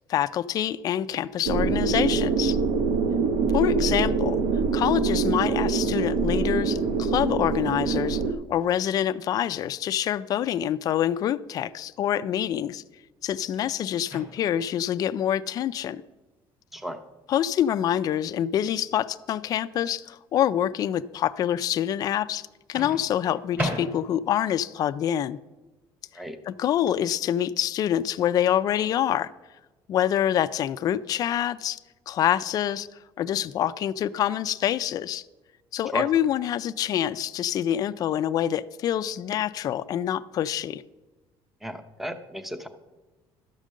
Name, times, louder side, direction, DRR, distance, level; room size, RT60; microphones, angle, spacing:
voice 1, 0.1-2.6 3.5-4.4 4.7-8.2 8.5-12.8 13.2-16.0 17.3-25.4 26.5-29.3 29.9-31.8 32.1-32.9 33.2-35.2 35.7-40.8, left 10 dB, 40° left, 0.4 m, -26 dB
sound 1, 1.5-8.3, right 4 dB, 75° right, 1.1 m, -24 dB
Microwave oven, 14.0-14.7 16.7-16.9 22.7-24.4, equal, 20° right, 2.7 m, -34 dB
voice 2, 41.6-42.7, equal, ahead, 0.7 m, -33 dB
12.0 x 5.1 x 7.4 m
cardioid pair, 145°, 10 cm